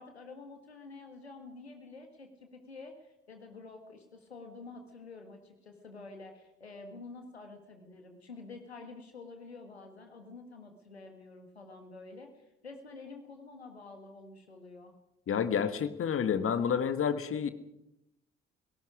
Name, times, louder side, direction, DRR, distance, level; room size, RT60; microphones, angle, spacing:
voice 1, 0.0-14.9, left 3 dB, 85° left, 5 dB, 1.8 m, -49 dB
voice 2, 15.3-17.5, left 7 dB, 45° left, 11 dB, 1.7 m, -29 dB
29.0 x 18.0 x 5.0 m, 0.85 s
figure-of-eight pair, 45°, 31 cm